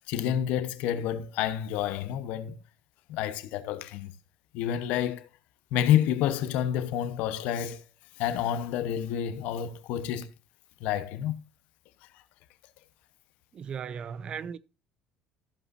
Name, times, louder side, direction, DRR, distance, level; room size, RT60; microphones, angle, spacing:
voice 1, 0.1-2.6 3.1-4.1 4.5-5.3 5.7-7.8 8.2-10.3 10.8-11.4, left 10 dB, 80° left, 1.1 m, -29 dB
voice 2, 13.5-14.6, right 7 dB, 35° right, 0.6 m, -36 dB
14.5 x 8.0 x 2.7 m
cardioid pair, 145°, 3 cm